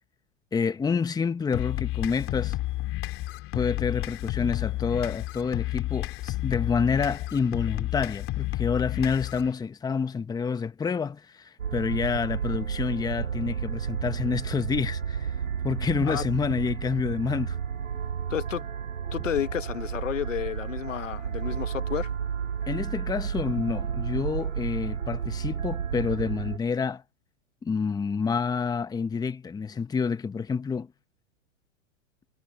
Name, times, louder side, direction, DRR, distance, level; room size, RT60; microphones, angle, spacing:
voice 1, 0.5-2.6 3.5-15.3 15.6-17.5 22.7-27.0 27.6-30.9, left 5 dB, 10° left, 1.2 m, -28 dB
sound 1, 1.5-9.5, left 17 dB, 35° left, 3.4 m, -31 dB
sound 2, 11.6-26.6, right 7 dB, 90° right, 2.7 m, -32 dB
voice 2, 18.3-18.7 19.1-22.1, left 10 dB, 80° left, 1.6 m, -31 dB
hypercardioid pair, 120°, 37 cm